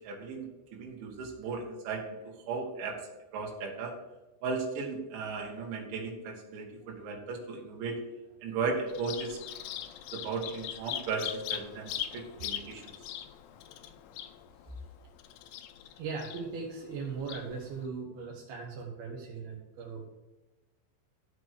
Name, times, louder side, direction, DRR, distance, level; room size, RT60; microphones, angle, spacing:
voice 1, 0.0-2.0 2.5-3.0 3.3-3.9 4.4-8.0 8.4-9.4 10.1-12.8, right 4 dB, 85° right, 0 dB, 4.2 m, -36 dB
Bird vocalization bird call bird song, 8.9-17.9, left 11 dB, 85° left, 3.1 m, -41 dB
voice 2, 15.9-20.1, right 5 dB, 65° right, -3 dB, 3.2 m, -39 dB
13.5 x 4.6 x 6.6 m, 1.1 s
omnidirectional pair, 5.2 m